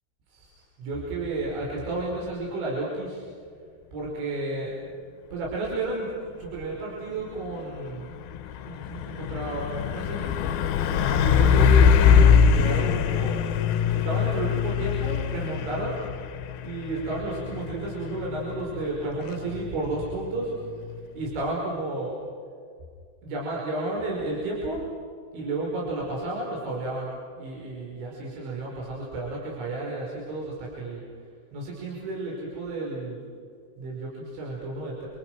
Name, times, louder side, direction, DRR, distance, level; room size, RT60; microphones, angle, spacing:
voice 1, 0.3-3.2 3.9-4.7 5.3-6.1 6.4-8.1 8.5-10.3 10.9-13.5 13.9-16.0 16.6-20.5 21.2-22.2 23.2-24.9 25.3-31.0 31.5-33.2 33.8-35.1, right 2 dB, 75° right, -3 dB, 7.7 m, -32 dB
Truck, 7.2-21.5, left 7 dB, 70° left, 2.5 m, -23 dB
30.0 x 29.5 x 6.2 m, 2.2 s
omnidirectional pair, 5.4 m